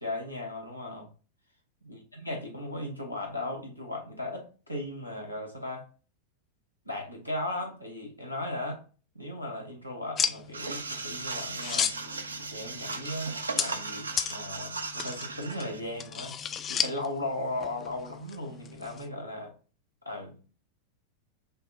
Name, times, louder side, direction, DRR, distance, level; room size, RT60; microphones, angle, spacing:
voice 1, 0.0-1.1 1.8-5.9 6.9-8.8 9.1-11.9 12.5-16.4 16.7-19.5 20.0-20.5, left 1 dB, 90° left, 0.9 m, -37 dB
sound 1, 10.2-19.1, left 7 dB, 25° left, 0.3 m, -35 dB
sound 2, 10.5-15.8, right 4 dB, 75° right, 0.3 m, -37 dB
5.5 x 2.1 x 2.6 m
figure-of-eight pair, 90°, 0 cm